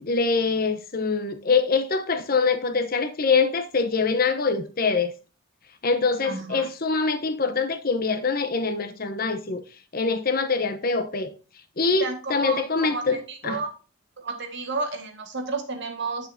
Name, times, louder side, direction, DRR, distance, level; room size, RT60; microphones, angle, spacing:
voice 1, 0.0-5.1 5.8-9.6 9.9-11.3 11.8-13.2 13.4-13.6, left 4 dB, 45° left, 0.9 m, -24 dB
voice 2, 6.2-6.7 12.0-13.7 14.2-16.3, right 3 dB, 55° right, 1.8 m, -32 dB
8.5 x 6.9 x 2.7 m
head